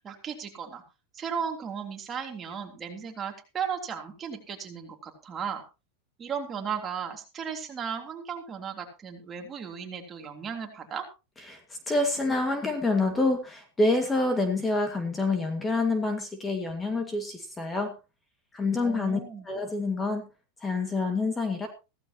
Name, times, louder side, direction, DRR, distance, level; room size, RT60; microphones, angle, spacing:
voice 1, 0.0-0.8 1.1-5.6 6.2-11.0 18.8-19.5, right 7 dB, 25° right, 3 dB, 3.4 m, -35 dB
voice 2, 11.5-17.9 18.5-19.2 19.5-20.3 20.6-21.7, left 2 dB, 15° left, 6 dB, 2.1 m, -27 dB
16.0 x 14.5 x 3.0 m, 0.30 s
supercardioid pair, 140°, 0 cm